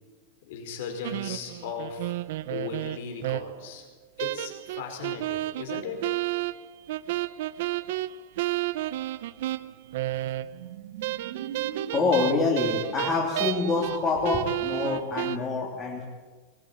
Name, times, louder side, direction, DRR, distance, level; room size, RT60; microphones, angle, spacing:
voice 1, 0.4-2.1 2.5-3.8 4.2-6.0, left 6 dB, 55° left, 4 dB, 5.0 m, -37 dB
sound 1, 1.0-3.7 4.2-10.7 11.0-14.0 14.2-15.4, right 16 dB, 55° right, 0.7 m, -31 dB
sound 2, 9.3-14.2, right 9 dB, 70° right, 1.4 m, -40 dB
voice 2, 11.9-16.0, left 4 dB, 20° left, -2 dB, 3.2 m, -26 dB
22.0 x 21.5 x 8.6 m, 1.3 s
supercardioid pair, 180°, 0 cm